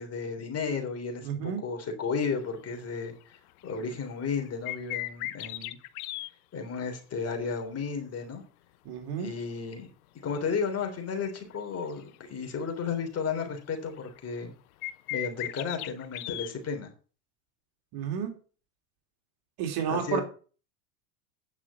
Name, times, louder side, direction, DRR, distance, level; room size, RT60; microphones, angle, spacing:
voice 1, 0.0-5.8 6.5-8.4 9.2-9.9 10.2-14.5 15.1-16.9 19.9-20.2, left 5 dB, 30° left, 4 dB, 3.6 m, -33 dB
voice 2, 1.2-1.6 8.8-9.3 17.9-18.3 19.6-20.2, right 8 dB, 55° right, 4 dB, 3.1 m, -31 dB
sound 1, 2.6-2.8 3.2-3.4 3.7-3.8 4.5-6.3 10.4-10.5 11.2-12.2 12.5-12.6 13.0-13.1 13.3-14.4 14.8-16.5, left 16 dB, 70° left, 1.0 m, -37 dB
9.5 x 6.1 x 7.0 m, 0.38 s
hypercardioid pair, 95°, 45 cm